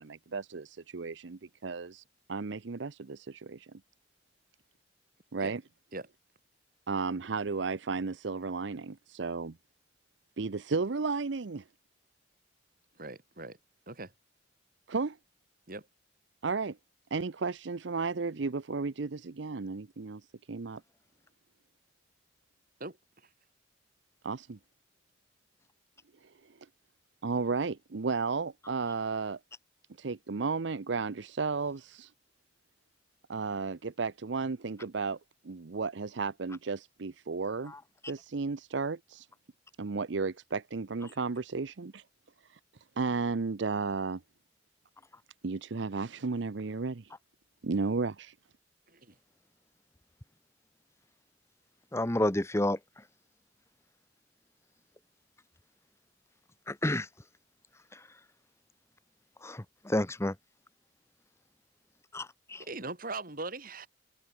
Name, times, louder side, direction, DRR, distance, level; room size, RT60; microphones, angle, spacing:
voice 1, 0.0-2.0 2.3-3.7 5.3-5.6 6.9-9.6 10.4-11.6 14.9-15.2 16.4-16.8 17.1-20.2 20.5-20.8 24.2-24.6 27.2-29.4 30.0-32.1 33.3-35.2 35.4-37.7 38.1-39.3 39.8-42.0 42.5-42.6 43.0-44.2 45.4-47.1 47.6-48.3, right 4 dB, 70° right, 0.7 m, -33 dB
voice 2, 13.0-13.6 13.9-14.1 15.7-15.9 22.8-23.0 48.9-49.2 62.6-63.9, right 3 dB, 50° right, 3.5 m, -40 dB
voice 3, 51.9-52.8 56.7-57.1 57.9-58.0 59.4-60.3 62.1-62.6, left 1 dB, 15° left, 1.0 m, -30 dB
head